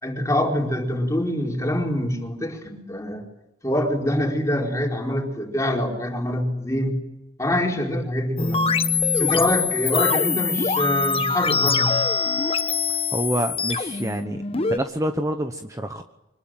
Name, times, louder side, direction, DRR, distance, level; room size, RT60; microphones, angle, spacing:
voice 1, 0.0-3.2 3.6-7.0 7.4-8.6 9.1-12.0, left 1 dB, 20° left, 0 dB, 4.7 m, -25 dB
sound 1, 8.4-14.8, left 5 dB, 35° left, 1.0 m, -23 dB
voice 2, 13.1-16.0, right 1 dB, 20° right, 6 dB, 1.0 m, -27 dB
25.0 x 20.5 x 9.1 m, 0.93 s
head